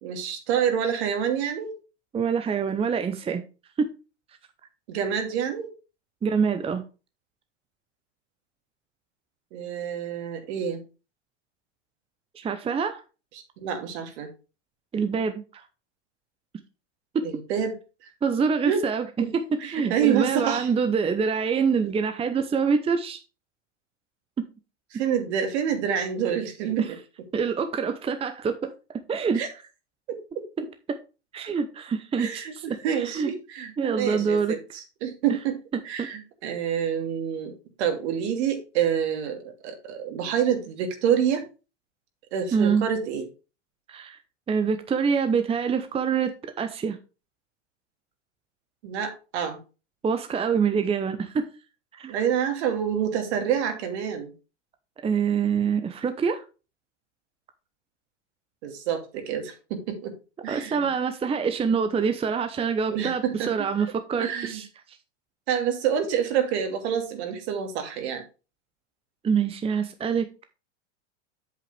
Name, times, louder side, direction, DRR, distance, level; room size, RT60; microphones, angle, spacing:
voice 1, 0.0-1.8 4.9-5.7 9.5-10.8 13.3-14.3 17.2-17.8 18.0-18.1 18.6-18.9 19.2-19.3 19.6-20.7 24.9-27.0 29.3-29.5 30.1-30.4 32.2-35.6 35.8-41.4 42.3-43.3 48.8-49.6 52.1-54.3 58.6-60.1 60.4-60.9 62.9-63.5 63.8-63.9 64.2-64.6 65.5-68.2, right 8 dB, 60° right, 2.6 m, -27 dB
voice 2, 2.1-3.4 3.8-3.9 6.2-6.8 12.3-13.0 14.9-15.6 17.1-17.3 18.2-19.1 19.3-23.2 24.4-24.5 26.8-26.9 27.3-28.7 29.1-29.4 30.9-31.0 31.3-33.3 33.8-34.6 35.7-36.1 42.5-42.8 43.9-44.2 44.5-47.0 50.0-51.5 51.9-52.1 55.0-56.4 60.5-64.7 69.2-70.4, right 6 dB, 15° right, 0.8 m, -25 dB
8.2 x 7.5 x 3.3 m
hypercardioid pair, 100°, 37 cm